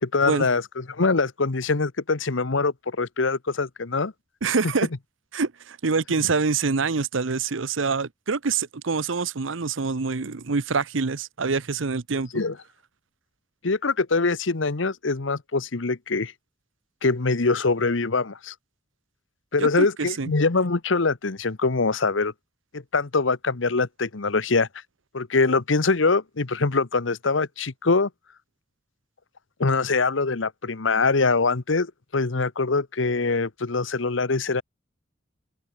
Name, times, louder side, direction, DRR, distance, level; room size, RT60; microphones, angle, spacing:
voice 1, 0.0-4.1 12.3-12.6 13.6-16.3 17.0-18.5 19.5-22.3 22.7-24.7 25.1-28.1 29.6-34.6, left 3 dB, 80° left, 1.1 m, -23 dB
voice 2, 4.4-4.9 5.3-12.3 19.6-20.3, right 4 dB, 85° right, 0.9 m, -25 dB
open air
head